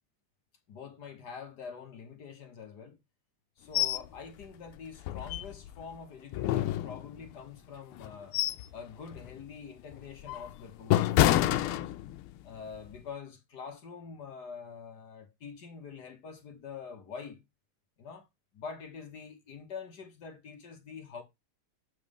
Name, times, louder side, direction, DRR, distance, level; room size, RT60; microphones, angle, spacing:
voice 1, 0.7-3.0 3.6-8.4 8.7-11.9 12.4-17.4 18.0-18.3 18.5-21.2, left 6 dB, 55° left, 1.6 m, -45 dB
sound 1, 3.7-4.1 4.4-4.5 5.0-5.8 6.3-7.3 7.9-8.7 9.1-9.4 9.9-12.4 12.7-13.0, left 13 dB, 85° left, 1.5 m, -28 dB
7.7 x 3.2 x 5.2 m
omnidirectional pair, 2.4 m